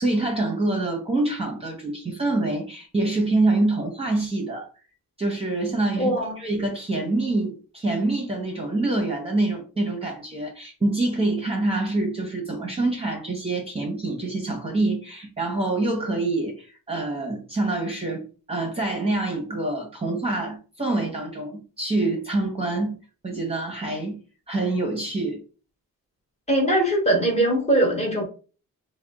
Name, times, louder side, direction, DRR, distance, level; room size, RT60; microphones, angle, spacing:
voice 1, 0.0-4.7 5.2-18.2 18.5-23.0 23.2-24.2 24.5-25.4, right 2 dB, 15° right, 0.9 m, -26 dB
voice 2, 6.0-6.3 26.5-28.2, right 1 dB, 20° left, 1.3 m, -21 dB
3.5 x 2.2 x 3.6 m
cardioid pair, 90°, 35 cm